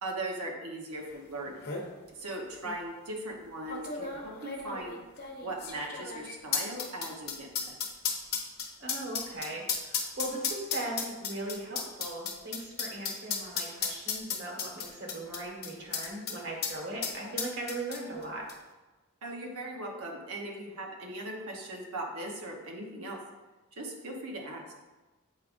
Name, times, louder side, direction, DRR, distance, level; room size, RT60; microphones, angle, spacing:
voice 1, 0.0-1.8 2.1-5.0 5.4-7.7 19.2-23.2 23.8-24.6, right 1 dB, 80° right, -1 dB, 1.1 m, -39 dB
sound 1, 1.1-1.2 1.5-1.9 2.6-2.8 3.7-16.4 16.6-16.7 17.0-18.2 18.5-18.6, left 6 dB, 45° left, 0.9 m, -34 dB
voice 2, 8.8-18.4, right 1 dB, 55° right, -2 dB, 1.6 m, -39 dB
7.7 x 4.8 x 2.6 m, 1.2 s
head